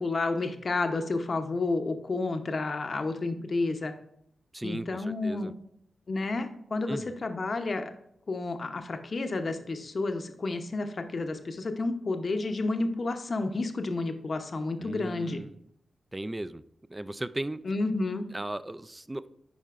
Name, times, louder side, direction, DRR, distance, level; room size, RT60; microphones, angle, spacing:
voice 1, 0.0-3.9 4.6-5.5 6.1-7.9 8.3-15.4 17.6-18.2, left 3 dB, 50° left, 7 dB, 0.8 m, -30 dB
voice 2, 4.5-5.5 6.9-7.1 14.8-15.5 16.1-16.6 16.9-17.7 18.3-19.3, right 1 dB, 15° right, 15 dB, 0.3 m, -36 dB
10.0 x 4.5 x 2.5 m, 0.72 s
cardioid pair, 65°, 0 cm